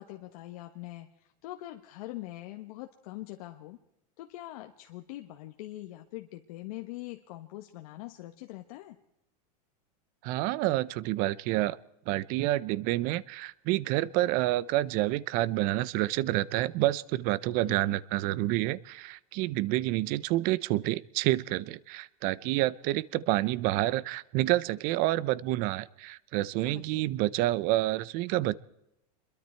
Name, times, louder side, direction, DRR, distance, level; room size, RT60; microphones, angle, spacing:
voice 1, 0.0-3.8 4.2-9.0 17.7-18.0 26.6-27.1, left 16 dB, 65° left, 5 dB, 1.4 m, -43 dB
voice 2, 10.2-11.8 12.1-28.5, right 16 dB, 45° right, 20 dB, 0.7 m, -28 dB
25.5 x 22.5 x 4.5 m, 0.83 s
supercardioid pair, 140°, 20 cm